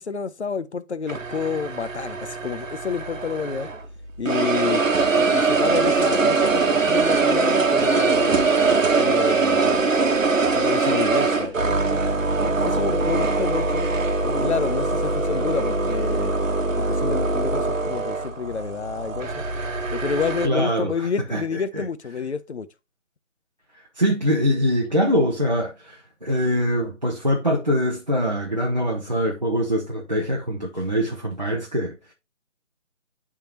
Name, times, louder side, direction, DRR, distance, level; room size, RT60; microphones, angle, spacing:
voice 1, 0.0-3.7 4.2-4.8 5.2-8.4 8.9-10.2 10.5-12.0 12.4-13.9 14.2-16.3 16.8-19.4 19.9-22.7, left 5 dB, 55° left, 0.6 m, -29 dB
sound 1, 1.1-3.9 4.3-20.5, right 3 dB, 70° right, 1.2 m, -22 dB
voice 2, 20.4-21.8 23.7-32.1, equal, 35° right, 0.7 m, -23 dB
10.5 x 3.6 x 2.8 m
figure-of-eight pair, 175°, 40 cm